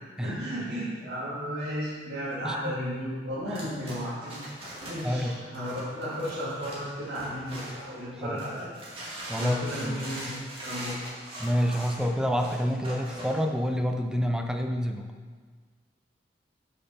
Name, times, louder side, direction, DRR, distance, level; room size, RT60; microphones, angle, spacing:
voice 1, 0.2-4.4 4.8-8.7 9.4-10.9, equal, 70° right, -12 dB, 2.4 m, -34 dB
sound 1, 3.5-8.0 8.4-13.4, right 1 dB, 30° right, 2.1 m, -41 dB
voice 2, 5.0-5.4 8.2-8.4 9.3-10.0 11.4-15.1, equal, 5° right, 4 dB, 0.6 m, -28 dB
8.0 x 5.8 x 5.4 m, 1.5 s
head